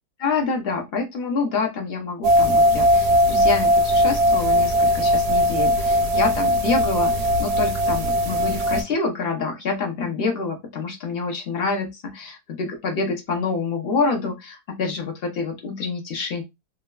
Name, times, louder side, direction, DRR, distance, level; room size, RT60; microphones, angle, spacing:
voice 1, 0.2-16.4, left 4 dB, 55° left, 3 dB, 0.7 m, -27 dB
sound 1, 2.2-8.8, equal, 75° right, 1.0 m, -19 dB
3.1 x 2.2 x 2.2 m, 0.20 s
omnidirectional pair, 1.7 m